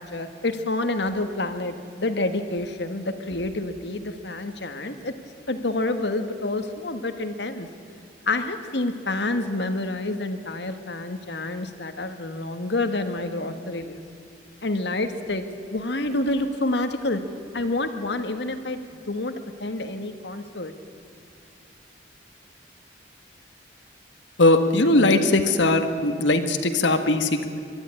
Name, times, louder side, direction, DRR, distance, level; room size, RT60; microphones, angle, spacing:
voice 1, 0.0-5.1 5.5-7.7 8.3-14.0 14.6-15.4 15.7-17.2 17.5-18.8 19.1-19.3 19.6-20.7, left 2 dB, 65° left, 8 dB, 1.5 m, -28 dB
voice 2, 24.4-27.5, left 2 dB, 85° left, 7 dB, 1.6 m, -19 dB
22.0 x 13.0 x 9.9 m, 2.4 s
head